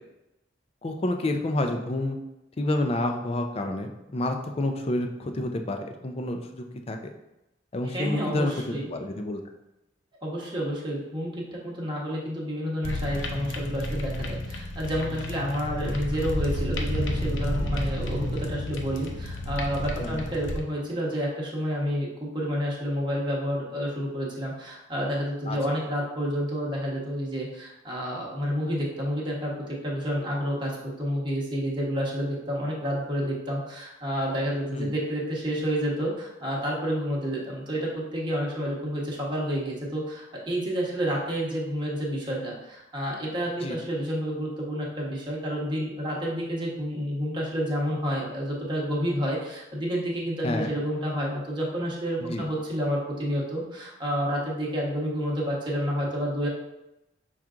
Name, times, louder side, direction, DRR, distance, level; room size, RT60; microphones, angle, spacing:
voice 1, 0.8-2.2 2.6-7.0 7.7-9.4 20.0-20.2 25.5-25.6 34.7-34.9 43.6-43.8 50.4-50.7 52.2-52.4, left 1 dB, 30° left, 5 dB, 0.4 m, -29 dB
voice 2, 7.9-8.9 10.2-29.5 29.8-30.7 31.0-56.5, equal, 25° right, -4 dB, 1.0 m, -29 dB
sound 1, 12.8-20.6, left 1 dB, 80° left, 0.6 m, -31 dB
5.8 x 2.4 x 3.7 m, 0.92 s
head